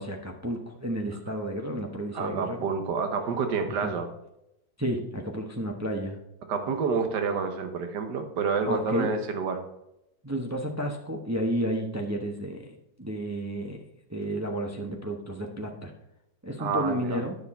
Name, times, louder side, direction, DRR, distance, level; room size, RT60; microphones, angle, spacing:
voice 1, 0.0-2.6 3.7-3.9 4.8-6.2 8.7-9.1 10.2-13.8 14.1-15.9 16.4-17.3, equal, 25° right, 2 dB, 0.3 m, -31 dB
voice 2, 2.1-4.1 6.5-9.6 16.6-17.2, right 5 dB, 65° right, 6 dB, 1.7 m, -28 dB
9.8 x 6.9 x 4.2 m, 0.85 s
omnidirectional pair, 2.1 m